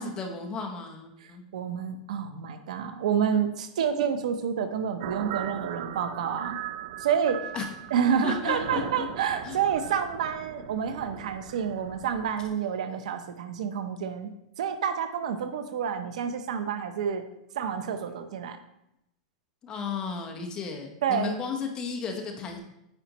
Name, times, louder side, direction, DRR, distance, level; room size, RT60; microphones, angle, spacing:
voice 1, 0.0-1.5 7.5-7.7 8.2-9.1 9.4-9.6 19.6-22.6, left 5 dB, 20° left, 2 dB, 0.8 m, -34 dB
voice 2, 1.2-6.6 7.0-7.4 7.9-14.3 14.6-17.2 17.5-18.6 21.0-21.4, right 7 dB, 80° right, 8 dB, 0.7 m, -29 dB
sound 1, 5.0-12.6, right 10 dB, 55° right, 0.4 m, -39 dB
8.9 x 5.1 x 3.0 m, 0.83 s
supercardioid pair, 165°, 4 cm